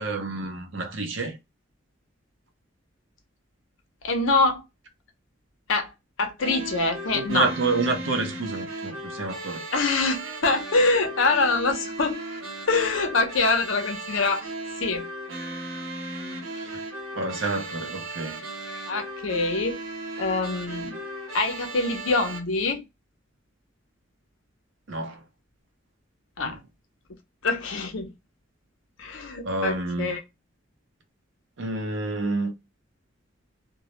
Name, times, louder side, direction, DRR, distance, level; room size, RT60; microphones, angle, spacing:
voice 1, 0.0-1.4 7.1-9.6 16.5-16.8 17.1-18.4 24.9-25.2 26.4-26.6 29.4-30.1 31.6-32.5, right 3 dB, 65° right, 0.6 m, -29 dB
voice 2, 4.0-4.6 5.7-5.9 6.2-7.5 9.7-12.2 12.7-14.5 14.8-15.0 18.9-19.8 20.2-21.0 21.3-22.8 26.4-26.6 27.4-28.1 29.0-30.2, left 3 dB, 75° left, 0.6 m, -24 dB
sound 1, 6.4-22.4, right 2 dB, 90° right, 0.9 m, -36 dB
2.2 x 2.0 x 2.8 m
head